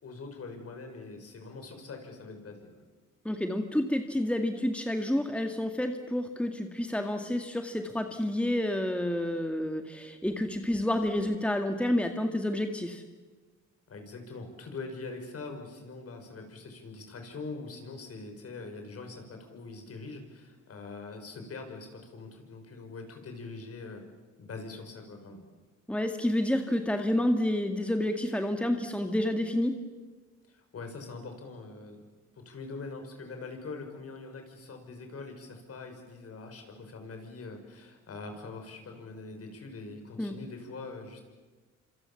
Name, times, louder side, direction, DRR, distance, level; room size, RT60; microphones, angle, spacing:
voice 1, 0.0-2.7 13.9-24.0 24.4-25.4 30.5-32.0 32.4-41.2, left 3 dB, 50° left, 4 dB, 6.2 m, -43 dB
voice 2, 3.3-13.0 25.9-29.8 40.2-40.3, left 1 dB, 5° left, 5 dB, 2.0 m, -29 dB
27.0 x 26.5 x 7.2 m, 1.3 s
cardioid pair, 90°, 30 cm